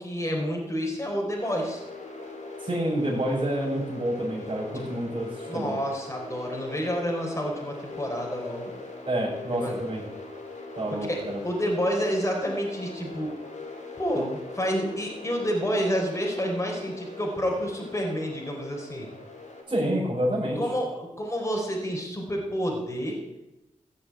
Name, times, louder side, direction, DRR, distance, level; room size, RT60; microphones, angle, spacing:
voice 1, 0.0-1.8 4.7-4.8 5.5-8.7 9.5-9.8 11.0-13.3 14.0-19.1 20.6-23.2, equal, 20° left, 0 dB, 4.4 m, -29 dB
sound 1, 1.4-19.6, left 3 dB, 70° left, 4.0 m, -41 dB
voice 2, 2.6-5.8 9.1-10.0 10.7-11.4 19.7-20.6, right 1 dB, 35° right, -9 dB, 6.1 m, -28 dB
14.5 x 7.2 x 9.5 m, 0.98 s
cardioid pair, 60°, 13 cm